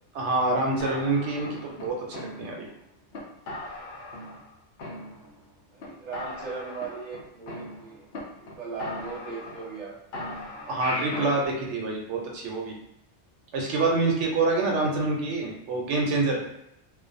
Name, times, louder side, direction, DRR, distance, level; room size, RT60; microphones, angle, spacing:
voice 1, 0.1-2.7 10.7-12.8 13.5-16.4, right 3 dB, 80° right, 0 dB, 0.9 m, -26 dB
sound 1, 0.8-2.7 3.1-3.2 3.5-4.5 4.8-5.5 5.8-5.9 6.1-8.2 8.5-8.6 8.8-9.8 10.1-11.5, left 1 dB, 65° left, 0.8 m, -38 dB
voice 2, 5.7-8.1 8.4-9.9, right 4 dB, 45° right, -3 dB, 0.7 m, -38 dB
2.4 x 2.2 x 2.5 m, 0.77 s
omnidirectional pair, 1.2 m